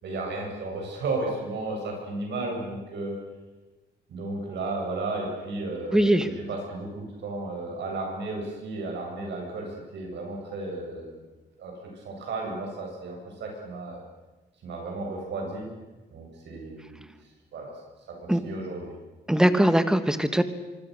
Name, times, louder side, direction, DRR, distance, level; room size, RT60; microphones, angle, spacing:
voice 1, 0.0-3.2 4.1-11.2 11.6-14.1 14.6-15.7 16.1-17.0 17.5-17.7 18.2-18.9, right 2 dB, 70° right, 0 dB, 7.8 m, -34 dB
voice 2, 5.9-6.3 18.3-18.4 19.3-20.4, right 1 dB, 5° right, 11 dB, 1.5 m, -21 dB
25.0 x 25.0 x 6.7 m, 1.2 s
cardioid pair, 145°, 18 cm